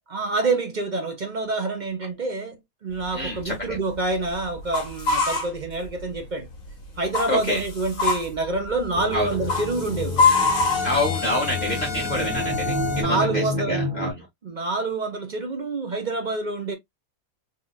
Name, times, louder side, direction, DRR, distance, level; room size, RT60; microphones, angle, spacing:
voice 1, 0.1-2.6 2.8-6.5 7.0-10.3 13.0-13.9 14.4-16.7, right 3 dB, 40° right, 0.8 m, -27 dB
sound 1, 3.0-6.2 6.5-13.0, left 4 dB, 70° left, 1.8 m, -25 dB
voice 2, 3.1-3.8 7.3-7.6 9.1-9.4 10.8-14.3, left 1 dB, 30° left, 1.8 m, -27 dB
sound 2, 8.9-14.1, equal, 80° right, 1.8 m, -30 dB
4.0 x 3.0 x 2.3 m
omnidirectional pair, 1.5 m